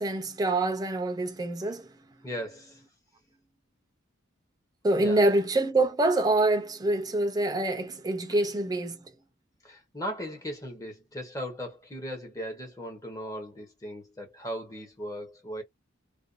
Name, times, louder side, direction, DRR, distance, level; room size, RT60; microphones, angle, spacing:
voice 1, 0.0-1.8 4.8-9.1, right 2 dB, 20° right, 0.5 m, -26 dB
voice 2, 2.2-2.8 4.9-5.3 7.8-8.0 8.3-8.4 9.6-15.6, equal, 15° left, 0.8 m, -38 dB
2.5 x 2.2 x 2.4 m
head